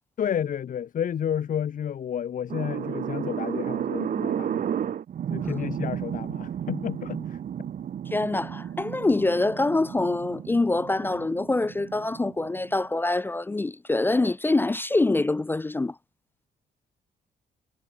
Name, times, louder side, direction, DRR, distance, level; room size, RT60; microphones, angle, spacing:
voice 1, 0.2-4.8 5.3-7.4, left 9 dB, 50° left, 2.5 m, -31 dB
sound 1, 2.5-12.9, right 9 dB, 50° right, 2.3 m, -33 dB
voice 2, 8.1-16.0, left 2 dB, 10° left, 0.3 m, -25 dB
cardioid pair, 160°, 18 cm